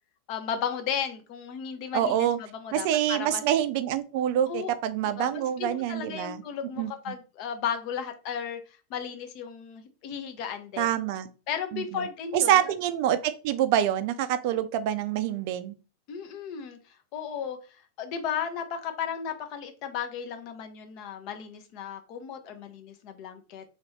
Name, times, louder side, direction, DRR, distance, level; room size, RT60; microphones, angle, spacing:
voice 1, 0.3-3.4 4.5-4.7 5.2-8.6 8.9-10.9 11.5-12.7 16.1-16.8 17.1-17.6 18.0-23.6, left 8 dB, 45° left, 7 dB, 0.6 m, -34 dB
voice 2, 1.9-2.4 2.7-6.4 6.8-7.2 10.8-11.3 11.7-12.1 12.3-15.7, right 11 dB, 45° right, 12 dB, 0.3 m, -26 dB
3.1 x 2.6 x 3.0 m, 0.34 s
figure-of-eight pair, 90°, 0 cm